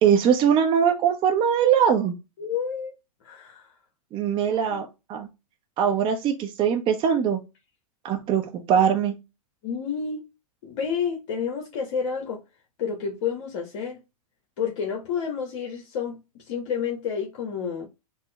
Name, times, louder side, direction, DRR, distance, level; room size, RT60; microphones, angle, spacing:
voice 1, 0.0-2.1 4.1-5.3 5.8-7.4 8.0-9.2, right 8 dB, 25° right, 0.6 m, -21 dB
voice 2, 2.4-2.9 3.2-3.7 4.7-4.8 9.6-10.3 10.6-12.4 12.8-14.0 14.6-16.2 16.5-17.9, left 6 dB, 55° left, 0.9 m, -30 dB
3.9 x 2.0 x 2.9 m
hypercardioid pair, 115°, 19 cm